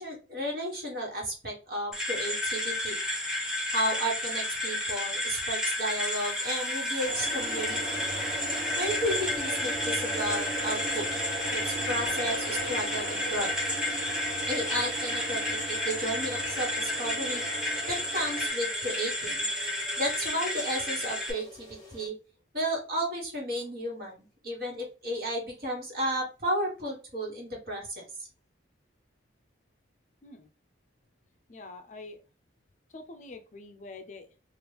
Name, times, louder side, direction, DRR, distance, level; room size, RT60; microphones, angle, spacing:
voice 1, 0.0-2.9 3.7-8.0 8.8-11.0 11.5-13.5 14.5-15.6 15.8-17.4 17.9-19.5 20.0-22.1 22.5-28.0, equal, 55° right, -2 dB, 1.5 m, -33 dB
sound 1, 1.9-21.3, left 1 dB, 5° right, 0.9 m, -31 dB
sound 2, 4.4-22.1, left 1 dB, 25° left, 1.0 m, -48 dB
sound 3, 7.0-18.5, right 2 dB, 35° right, 1.2 m, -38 dB
voice 2, 31.5-32.2 32.9-34.3, left 3 dB, 40° left, 7 dB, 0.4 m, -45 dB
3.0 x 2.4 x 3.3 m, 0.33 s
head